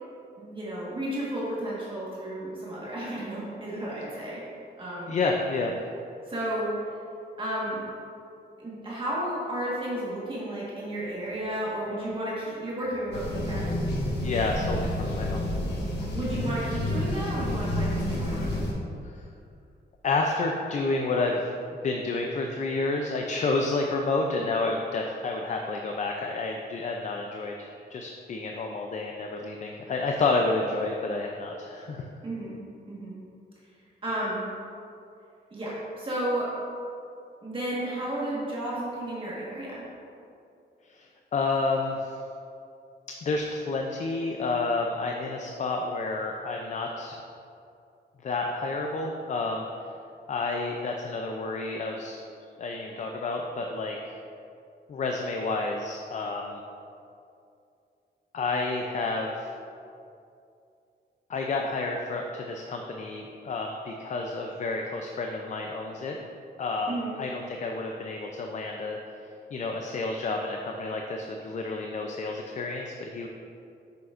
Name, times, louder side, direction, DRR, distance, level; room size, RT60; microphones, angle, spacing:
voice 1, 0.4-4.4 4.8-5.1 6.3-6.7 7.4-7.8 8.6-13.6 16.1-18.6 32.2-32.6 32.9-33.2 34.0-34.5 35.5-36.5 37.4-39.9 66.9-67.1, right 1 dB, 30° right, -7 dB, 1.5 m, -32 dB
voice 2, 5.1-5.7 14.2-15.5 19.1-19.2 20.0-21.5 21.8-32.1 40.9-42.2 43.2-47.2 48.2-49.7 50.3-52.2 52.6-54.2 54.9-56.6 58.3-59.5 61.3-66.2 66.6-66.9 67.2-69.0 69.5-73.3, left 3 dB, 45° left, 2 dB, 0.5 m, -30 dB
sound 1, 13.1-18.7, left 1 dB, 75° left, 1.3 m, -29 dB
8.2 x 6.7 x 2.5 m, 2.6 s
wide cardioid pair, 155°, 18 cm